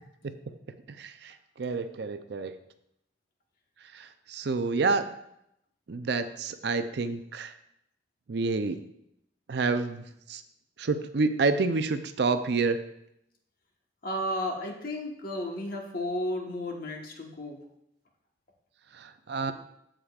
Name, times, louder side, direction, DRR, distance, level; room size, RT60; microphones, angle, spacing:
voice 1, 1.0-1.3 1.6-2.5 3.9-5.0 5.9-7.5 8.3-8.8 9.5-10.0 10.3-10.4 10.8-12.8 19.0-19.5, right 4 dB, 60° right, 10 dB, 0.5 m, -28 dB
voice 2, 14.0-17.6, left 1 dB, 50° left, 1 dB, 1.2 m, -33 dB
15.0 x 5.0 x 2.4 m, 0.78 s
head